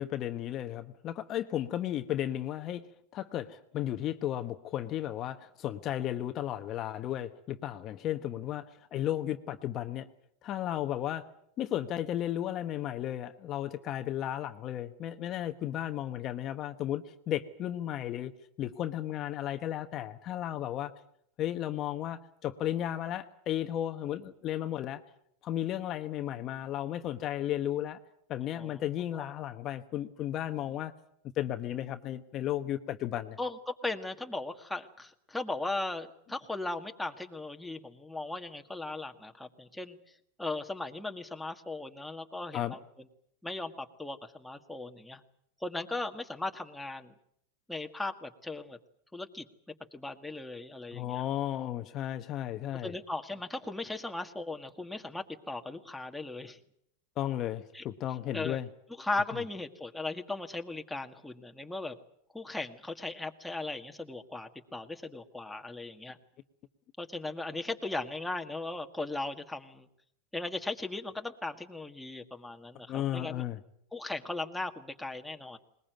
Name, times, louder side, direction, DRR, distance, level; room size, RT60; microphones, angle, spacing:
voice 1, 0.0-2.8 3.1-10.1 10.4-11.3 11.6-18.3 18.6-20.9 21.4-25.0 25.4-28.0 28.3-30.9 31.4-33.4 42.5-42.7 50.9-52.9 57.2-58.7 72.9-73.6, left 12 dB, 40° left, 8 dB, 1.1 m, -34 dB
voice 2, 33.4-40.0 40.4-42.8 43.4-45.2 45.6-47.1 47.7-48.8 49.1-49.5 49.9-51.2 52.8-56.6 57.7-57.8 58.3-58.6 59.0-62.0 62.3-66.2 67.0-69.9 70.3-73.4 73.9-75.6, left 2 dB, 5° left, 4 dB, 1.8 m, -37 dB
21.0 x 21.0 x 9.2 m, 0.70 s
supercardioid pair, 125°, 0 cm